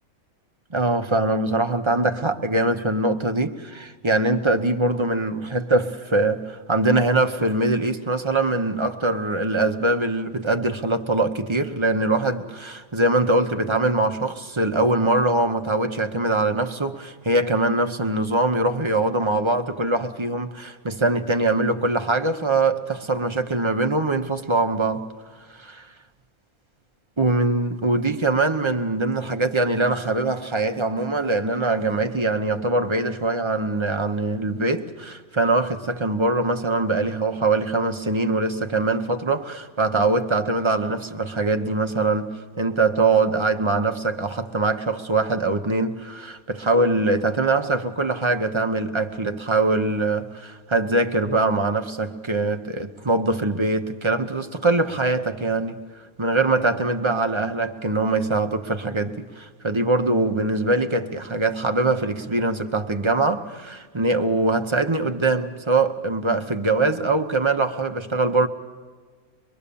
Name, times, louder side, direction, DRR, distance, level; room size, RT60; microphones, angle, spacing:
voice 1, 0.7-25.0 25.5-25.9 27.2-55.8 56.2-68.5, right 2 dB, 20° right, 1.0 m, -23 dB
24.0 x 23.0 x 7.1 m
omnidirectional pair, 1.5 m